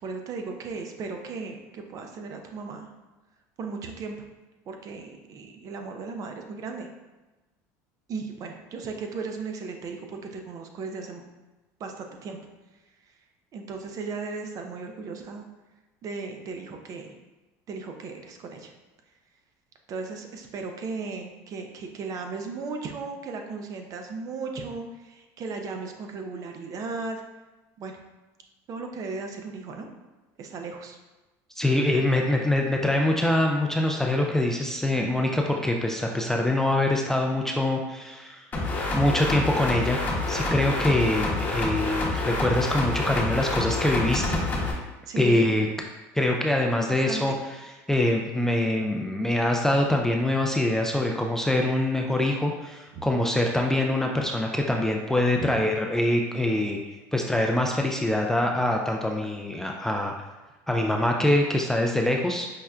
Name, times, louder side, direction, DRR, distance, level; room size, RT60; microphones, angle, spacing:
voice 1, 0.0-2.9 3.6-4.2 4.7-6.9 8.1-11.2 11.8-12.4 13.5-15.4 16.0-17.1 17.7-18.7 19.9-27.2 27.8-27.9 28.7-29.9 30.4-31.0 45.1-45.5 46.9-47.4 52.9-53.1 55.4-55.5, right 4 dB, 45° right, 4 dB, 0.5 m, -36 dB
voice 2, 31.6-38.4 38.9-40.0 40.3-44.4 45.2-45.7 46.2-47.3 47.9-56.8 57.1-60.1 60.7-62.6, left 1 dB, 5° left, 0 dB, 0.3 m, -24 dB
sound 1, 38.5-44.7, left 2 dB, 25° left, 0.9 m, -28 dB
5.5 x 2.1 x 2.4 m, 1.1 s
supercardioid pair, 110°, 8 cm